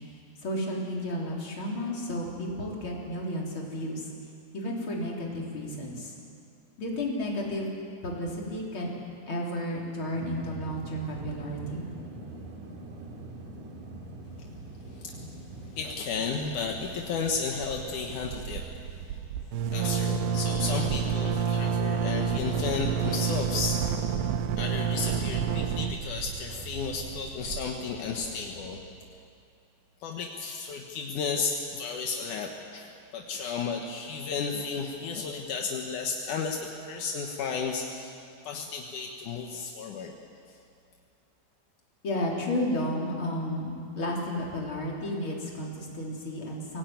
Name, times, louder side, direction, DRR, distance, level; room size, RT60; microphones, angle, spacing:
voice 1, 0.4-4.1 4.5-6.1 6.8-7.7 8.0-8.9 9.3-11.8 42.0-46.8, left 1 dB, 30° left, -3 dB, 4.0 m, -32 dB
sound 1, 10.1-18.3, right 2 dB, 50° right, 3.0 m, -44 dB
voice 2, 14.9-15.3 15.7-19.2 19.7-24.2 24.6-28.8 30.0-38.2 38.4-40.1, left 5 dB, 70° left, 1 dB, 2.0 m, -33 dB
sound 2, 16.5-17.0 17.3-17.4 17.6-28.3, right 7 dB, 80° right, 3.1 m, -29 dB
24.0 x 17.5 x 9.3 m, 2.5 s
omnidirectional pair, 5.3 m